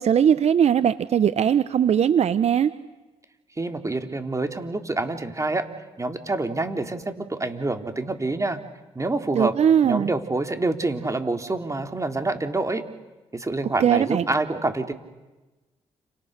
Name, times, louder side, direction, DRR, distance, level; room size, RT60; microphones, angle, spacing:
voice 1, 0.0-2.7 9.3-10.1 13.8-14.2, right 8 dB, 65° right, 14 dB, 0.9 m, -20 dB
voice 2, 3.6-5.7 6.0-8.6 8.9-9.6 9.8-12.8 13.3-14.9, right 2 dB, 25° right, 6 dB, 3.4 m, -27 dB
29.5 x 28.0 x 6.7 m, 1.1 s
supercardioid pair, 55°, 12 cm